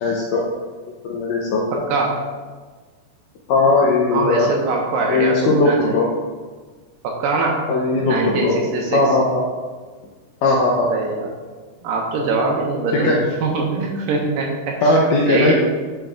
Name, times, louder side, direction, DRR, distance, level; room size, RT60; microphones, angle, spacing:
voice 1, 0.0-0.4 1.0-1.6 3.5-4.5 5.1-6.1 7.7-8.6 8.9-9.4 10.4-10.9 12.9-13.2 14.8-15.5, left 2 dB, 80° left, -2 dB, 1.9 m, -18 dB
voice 2, 1.7-2.2 4.1-6.1 7.0-7.7 8.1-9.0 10.9-11.3 11.8-15.0 15.3-15.5, right 3 dB, 75° right, 0 dB, 2.3 m, -23 dB
10.0 x 6.2 x 2.4 m, 1.4 s
omnidirectional pair, 4.5 m